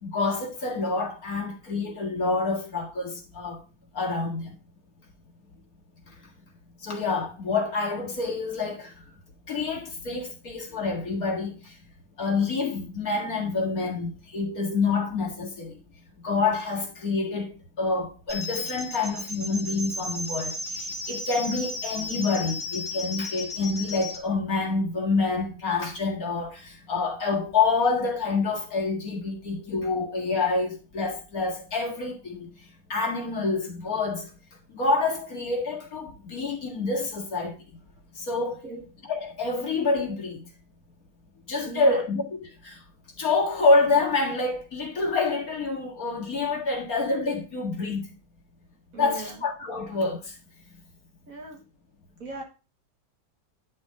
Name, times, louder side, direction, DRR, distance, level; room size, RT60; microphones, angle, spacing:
voice 1, 0.0-3.6 3.9-4.5 6.8-8.9 9.5-11.7 12.2-15.8 16.2-32.5 32.9-34.3 34.7-37.6 38.2-38.6 39.1-40.4 41.5-42.8 43.2-48.0 49.0-50.3, left 3 dB, 50° left, 2.2 m, -27 dB
sound 1, 18.3-24.2, left 2 dB, 15° right, 1.6 m, -34 dB
voice 2, 41.7-42.0 48.9-49.4 51.3-51.6 52.2-52.4, right 3 dB, 45° right, 2.1 m, -38 dB
10.5 x 4.3 x 4.8 m
omnidirectional pair, 2.1 m